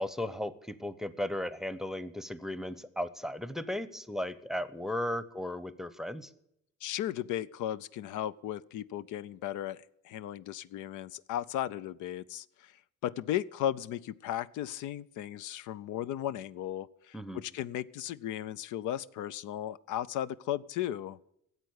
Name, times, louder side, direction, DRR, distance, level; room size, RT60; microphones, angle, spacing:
voice 1, 0.0-6.3 17.1-17.4, left 1 dB, ahead, 15 dB, 0.7 m, -36 dB
voice 2, 6.8-9.8 10.0-12.8 13.0-21.2, left 12 dB, 85° left, 16 dB, 0.5 m, -36 dB
13.5 x 8.0 x 8.0 m, 0.77 s
cardioid pair, 90°, 30 cm